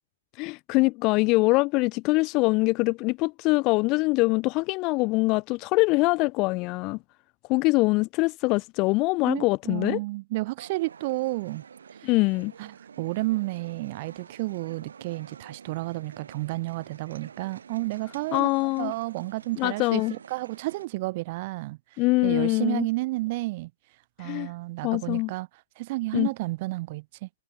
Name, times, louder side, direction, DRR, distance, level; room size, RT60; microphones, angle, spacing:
voice 1, 0.4-7.0 7.5-10.0 12.0-12.5 18.3-18.9 19.6-20.1 22.0-22.9 24.2-24.5 24.8-25.3 26.1-26.3, left 24 dB, 20° left, 0.3 m, -23 dB
voice 2, 9.3-11.6 12.0-12.1 12.6-18.5 18.8-21.8 22.2-23.7 24.2-25.5 25.8-27.3, right 20 dB, 25° right, 0.7 m, -31 dB
sound 1, 10.6-20.9, right 6 dB, 90° right, 2.8 m, -48 dB
hypercardioid pair, 180°, 0 cm